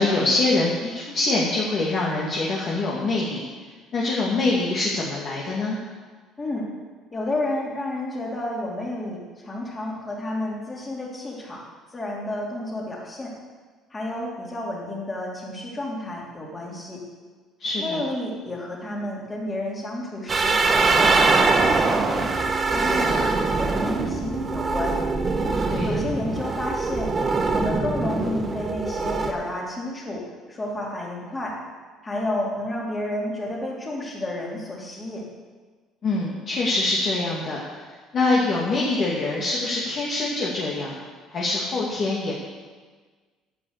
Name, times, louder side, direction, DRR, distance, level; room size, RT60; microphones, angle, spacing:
voice 1, 0.0-3.4 3.9-5.8 17.6-18.0 25.7-26.0 36.0-37.6 38.1-40.9 41.3-42.3, left 2 dB, 40° left, -4 dB, 2.3 m, -24 dB
voice 2, 6.4-6.7 7.1-11.6 11.9-13.3 13.9-17.0 17.8-22.3 22.7-25.0 25.8-27.1 27.5-31.6 32.0-35.3, left 1 dB, 20° left, -3 dB, 3.2 m, -31 dB
sound 1, 20.3-29.3, right 3 dB, 25° right, 1.1 m, -23 dB
sound 2, 21.7-27.2 27.9-28.1 29.3-29.4, right 3 dB, 85° right, 3.6 m, -37 dB
11.0 x 8.3 x 8.1 m, 1.5 s
cardioid pair, 135°, 0 cm